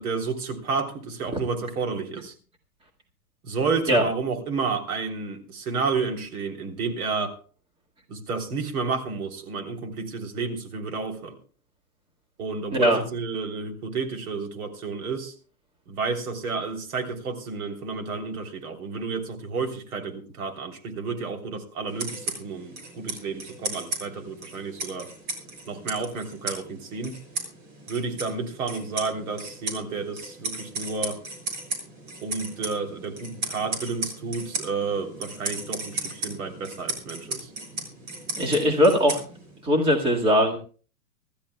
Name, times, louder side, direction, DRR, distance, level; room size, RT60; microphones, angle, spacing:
voice 1, 0.0-2.3 3.4-7.4 8.1-11.3 12.4-15.3 15.9-25.1 25.7-27.2 27.9-31.2 32.2-37.5, right 4 dB, 65° right, 4 dB, 3.5 m, -31 dB
sound 1, 21.9-39.7, right 2 dB, 40° right, 6.5 m, -36 dB
voice 2, 38.4-39.2 39.6-40.6, equal, 10° right, 0 dB, 1.9 m, -20 dB
26.0 x 13.0 x 2.3 m, 0.39 s
hypercardioid pair, 150°, 47 cm